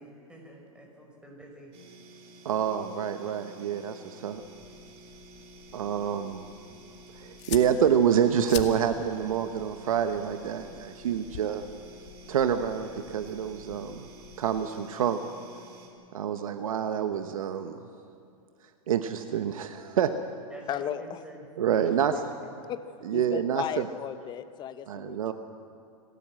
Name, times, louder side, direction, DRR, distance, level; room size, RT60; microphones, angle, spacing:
voice 1, 0.0-1.7 20.5-21.4 21.7-22.3 22.6-22.7, right 1 dB, 5° right, 0 dB, 5.6 m, -47 dB
sound 1, 1.7-15.9, right 2 dB, 35° right, 4.0 m, -51 dB
voice 2, 2.4-4.4 5.7-6.4 7.2-11.7 12.3-14.0 14.4-15.2 16.1-17.8 18.9-20.1 21.6-22.1 23.1-23.8 24.9-25.3, right 8 dB, 75° right, 8 dB, 1.1 m, -27 dB
sound 2, 4.3-14.6, left 10 dB, 55° left, 2.0 m, -46 dB
voice 3, 20.7-21.2 22.7-22.8 23.1-25.3, left 10 dB, 25° left, 12 dB, 0.9 m, -35 dB
26.0 x 15.0 x 7.7 m, 2.6 s
hypercardioid pair, 125°, 18 cm